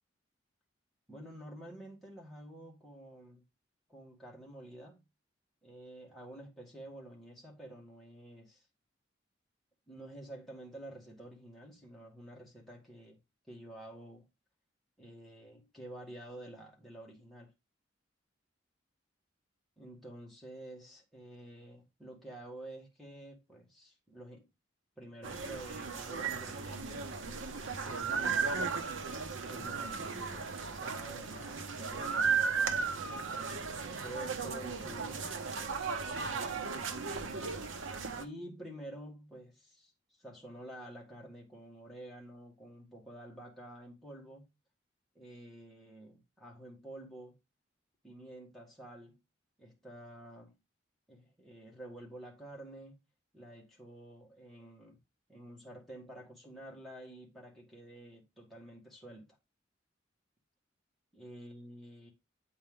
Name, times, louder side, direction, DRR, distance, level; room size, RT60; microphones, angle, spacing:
voice 1, 1.1-3.4 3.9-5.0 5.6-8.6 9.9-13.2 13.5-14.3 15.0-17.5 19.8-24.5 25.0-27.1 27.8-28.8 29.5-32.4 33.0-33.7 34.0-35.3 36.1-37.1 38.1-44.5 45.2-47.3 48.0-49.2 49.6-50.6 51.1-53.0 53.3-55.0 55.3-59.3 61.1-62.1, right 1 dB, ahead, 1.8 m, -50 dB
sound 1, 25.2-38.2, right 5 dB, 85° right, 0.8 m, -35 dB
8.2 x 4.4 x 3.7 m
head